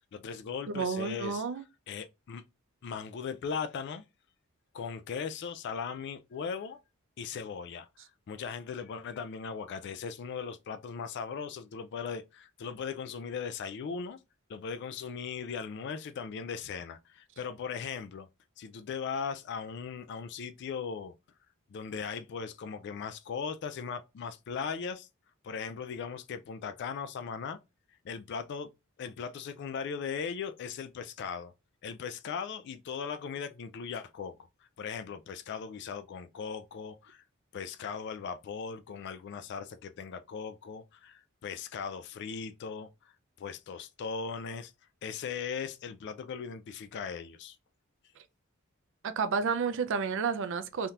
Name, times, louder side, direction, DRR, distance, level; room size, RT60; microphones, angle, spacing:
voice 1, 0.1-1.4 1.9-2.4 2.8-4.0 4.7-6.8 7.2-7.9 8.3-14.2 14.5-18.3 18.6-21.1 21.7-25.1 25.4-27.6 28.0-28.7 29.0-31.5 31.8-34.3 34.8-37.2 37.5-42.9 43.4-44.7 45.0-47.6, left 6 dB, 55° left, 0.3 m, -38 dB
voice 2, 0.7-1.6 49.0-50.9, right 5 dB, 60° right, 0.4 m, -31 dB
3.5 x 2.8 x 2.4 m
head